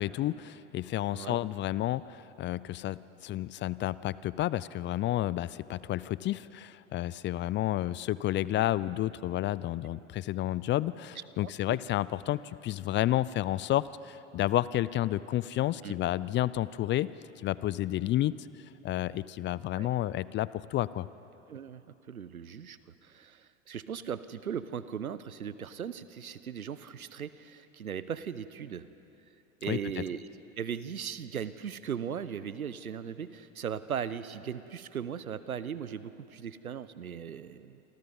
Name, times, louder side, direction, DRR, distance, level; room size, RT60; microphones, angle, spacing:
voice 1, 0.0-17.1 17.4-18.3 18.8-21.1 29.7-29.8, left 14 dB, 30° left, 19 dB, 0.5 m, -31 dB
voice 2, 11.2-11.8 15.8-15.9 19.7-19.9 21.5-21.8 22.1-28.9 29.6-30.3 30.6-37.8, right 8 dB, 90° right, 15 dB, 0.9 m, -38 dB
27.5 x 25.5 x 5.4 m, 3.0 s
hypercardioid pair, 85°, 42 cm